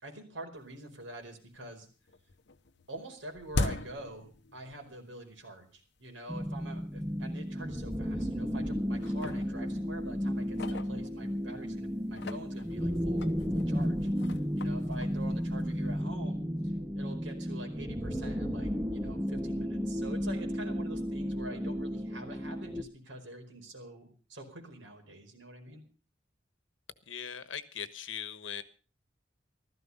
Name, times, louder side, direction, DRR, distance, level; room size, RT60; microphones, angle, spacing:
voice 1, 0.0-1.9 2.9-14.1 14.5-25.8, right 1 dB, 80° right, 3 dB, 4.8 m, -46 dB
sound 1, 0.7-0.8 1.2-5.0 5.3-5.4 6.2-6.3 6.8-6.9 7.2-7.4 8.1-8.6 8.9-11.6 12.0-15.9, left 2 dB, 65° left, 1.0 m, -40 dB
sound 2, 6.3-22.8, equal, 5° right, 1.0 m, -33 dB
voice 2, 27.1-28.6, left 8 dB, 90° left, 12 dB, 1.3 m, -40 dB
15.5 x 13.5 x 5.5 m, 0.38 s
head